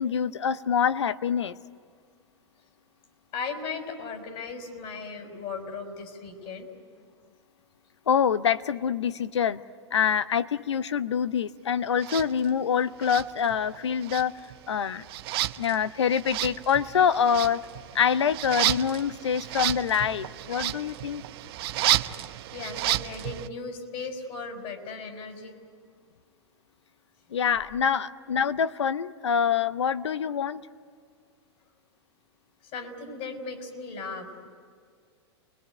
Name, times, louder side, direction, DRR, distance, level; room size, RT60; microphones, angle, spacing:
voice 1, 0.0-1.6 8.1-9.6 9.9-14.3 14.7-15.0 15.6-17.7 17.9-21.2 27.3-30.7, left 7 dB, 80° left, 14 dB, 0.9 m, -25 dB
voice 2, 3.3-6.7 22.5-25.5 32.6-34.5, left 4 dB, 45° left, 6 dB, 5.2 m, -37 dB
sound 1, 12.0-12.3 13.0-13.8 14.0-23.5, right 14 dB, 60° right, 0.9 m, -31 dB
29.5 x 21.5 x 9.2 m, 2.1 s
hypercardioid pair, 100°, 14 cm